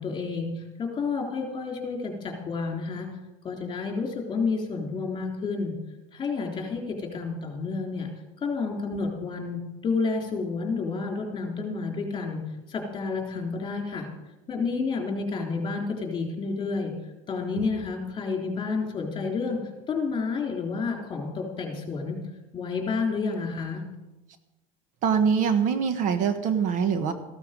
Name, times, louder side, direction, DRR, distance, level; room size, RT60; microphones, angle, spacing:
voice 1, 0.0-3.1 3.4-5.7 6.1-8.1 8.4-12.4 12.7-14.1 14.5-16.9 17.3-19.6 19.9-22.2 22.5-23.8, left 4 dB, 25° left, 2 dB, 3.5 m, -30 dB
voice 2, 25.0-27.1, right 6 dB, 45° right, 9 dB, 1.2 m, -23 dB
14.5 x 12.5 x 5.2 m, 1.0 s
supercardioid pair, 135°, 17 cm